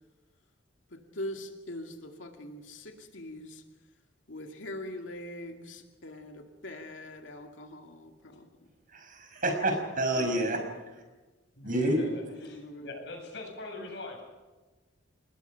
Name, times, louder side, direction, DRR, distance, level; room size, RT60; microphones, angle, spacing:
voice 1, 0.9-3.6 4.3-8.5 10.1-10.5 12.1-13.0, left 1 dB, 85° left, 2.3 m, -42 dB
voice 2, 8.9-10.6 11.6-12.0, right 1 dB, 45° right, 5.4 m, -28 dB
voice 3, 11.5-14.2, left 2 dB, 65° left, 7.9 m, -42 dB
29.0 x 20.0 x 5.8 m
head